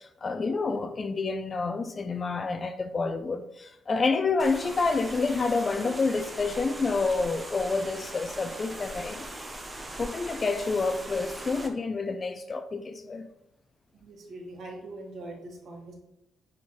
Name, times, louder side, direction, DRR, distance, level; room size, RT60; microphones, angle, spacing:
voice 1, 0.0-9.3 10.0-13.3, left 4 dB, 25° left, 0.4 m, -28 dB
sound 1, 4.4-11.7, right 1 dB, 10° right, 0.7 m, -40 dB
voice 2, 14.0-15.9, right 2 dB, 55° right, 1.6 m, -42 dB
9.8 x 3.7 x 3.1 m
cardioid pair, 155°, 0 cm